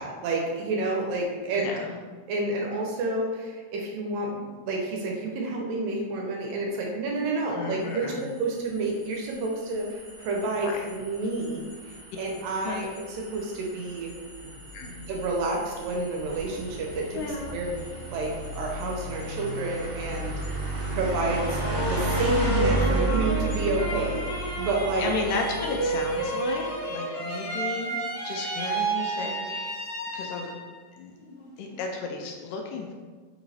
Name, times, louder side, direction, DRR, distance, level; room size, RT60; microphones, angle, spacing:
voice 1, 0.0-1.7 2.3-8.1 8.4-14.1 14.9-17.2 17.5-17.8 18.1-20.3 20.9-24.2 24.6-25.1, right 2 dB, 80° right, -1 dB, 2.2 m, -30 dB
voice 2, 1.6-2.0 7.5-8.3 10.6-10.8 12.6-12.8 14.7-14.9 17.1-17.5 25.0-28.0 28.2-29.7 30.1-30.5 31.0-31.2 31.6-32.9, left 3 dB, 85° left, 2 dB, 1.9 m, -33 dB
sound 1, 8.2-26.7, right 1 dB, 50° right, 2.2 m, -33 dB
sound 2, 20.9-30.7 31.2-31.8, right 2 dB, 55° left, 1.0 m, -30 dB
5.6 x 2.9 x 2.7 m, 1.4 s
omnidirectional pair, 4.3 m